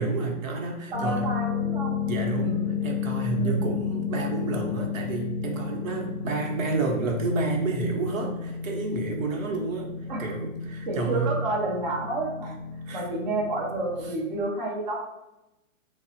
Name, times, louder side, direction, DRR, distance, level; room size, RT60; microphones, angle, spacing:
voice 1, 0.0-1.3 2.1-9.9 10.2-11.3 12.9-13.0 14.0-14.1, right 3 dB, 80° right, 1 dB, 0.8 m, -29 dB
sound 1, 0.9-14.1, left 6 dB, 10° left, 0.9 m, -32 dB
voice 2, 0.9-2.0 2.3-2.7 3.3-3.8 10.1-10.4 10.9-12.6 12.9-14.9, right 2 dB, 40° right, -3 dB, 0.5 m, -30 dB
3.3 x 2.0 x 2.7 m, 0.94 s
hypercardioid pair, 170°, 40 cm